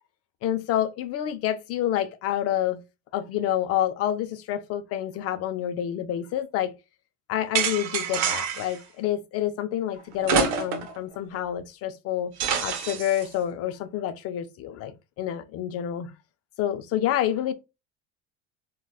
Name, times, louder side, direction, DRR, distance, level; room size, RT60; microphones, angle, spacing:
voice 1, 0.4-2.8 3.1-6.7 7.3-12.3 12.6-16.1 16.6-17.5, left 11 dB, 55° left, 0.4 m, -28 dB
sound 1, 7.5-8.8 10.2-11.0 11.3-11.4 12.4-13.2, right 7 dB, 75° right, 0.8 m, -26 dB
3.8 x 2.2 x 2.3 m
cardioid pair, 115°, 29 cm